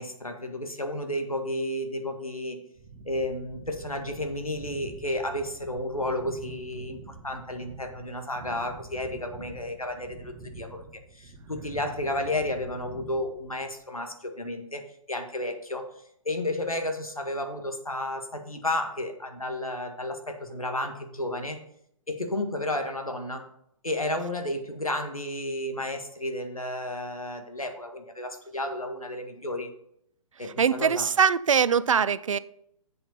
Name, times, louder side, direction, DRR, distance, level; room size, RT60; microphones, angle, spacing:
voice 1, 0.0-2.6 3.0-10.8 11.1-14.8 15.1-15.8 16.2-21.6 22.1-23.4 23.8-29.7 30.4-31.1, left 1 dB, 85° left, 1.7 m, -32 dB
sound 1, 2.8-13.9, right 3 dB, 35° right, 2.3 m, -46 dB
voice 2, 30.6-32.4, right 7 dB, 65° right, 0.5 m, -22 dB
7.8 x 6.9 x 5.5 m
figure-of-eight pair, 125°, 18 cm